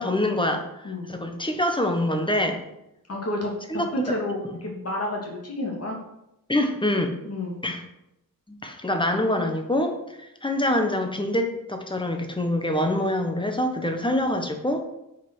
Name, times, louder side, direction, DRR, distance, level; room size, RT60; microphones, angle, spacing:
voice 1, 0.0-2.6 3.7-3.9 4.5-4.6 6.5-7.1 7.6-7.8 8.5-10.0 10.4-14.8, left 1 dB, 15° left, 5 dB, 1.1 m, -25 dB
voice 2, 3.1-6.0 7.2-7.6, left 1 dB, 40° left, -1 dB, 2.6 m, -30 dB
9.0 x 5.6 x 6.2 m, 0.86 s
wide cardioid pair, 155°, 36 cm